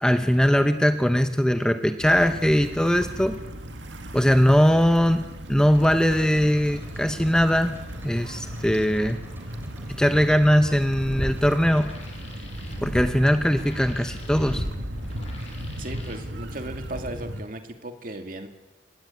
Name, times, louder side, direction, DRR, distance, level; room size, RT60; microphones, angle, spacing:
voice 1, 0.0-3.4 4.1-7.7 8.0-9.2 10.0-11.9 12.8-14.6, equal, 5° left, 8 dB, 0.8 m, -20 dB
sound 1, 2.0-17.4, equal, 75° right, 2.2 m, -37 dB
sound 2, 5.6-12.1, equal, 10° right, 4.1 m, -50 dB
sound 3, 10.8-16.2, equal, 35° left, 7.2 m, -36 dB
voice 2, 15.8-18.5, right 1 dB, 45° right, 5 dB, 2.3 m, -36 dB
25.5 x 20.0 x 8.5 m, 1.2 s
head